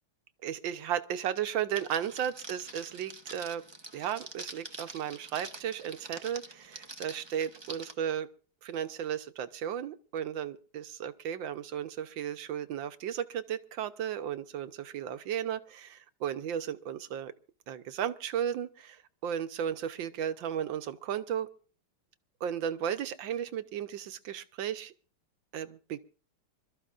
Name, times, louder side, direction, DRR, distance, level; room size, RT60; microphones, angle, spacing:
voice 1, 0.4-3.6 3.9-8.3 8.6-17.3 17.7-21.5 22.4-24.9 25.5-26.0, right 9 dB, 65° right, 10 dB, 1.6 m, -35 dB
Crackle, 1.7-7.9, right 3 dB, 25° right, 0.6 m, -46 dB
27.0 x 13.5 x 2.5 m, 0.38 s
omnidirectional pair, 2.4 m